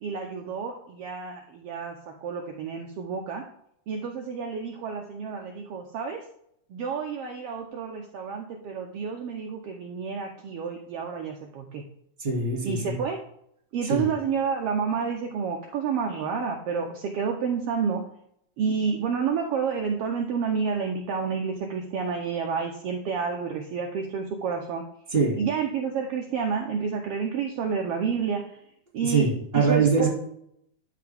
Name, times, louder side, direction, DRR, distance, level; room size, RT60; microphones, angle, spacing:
voice 1, 0.0-3.5 3.9-6.2 6.7-11.8 12.6-13.2 13.7-18.0 18.6-24.8 25.4-28.6 28.9-30.1, right 6 dB, 70° right, 2 dB, 1.4 m, -29 dB
voice 2, 12.2-13.0 13.9-14.0 25.1-25.4 29.1-30.1, right 4 dB, 20° right, -2 dB, 2.6 m, -23 dB
12.0 x 4.8 x 3.5 m, 0.72 s
omnidirectional pair, 3.4 m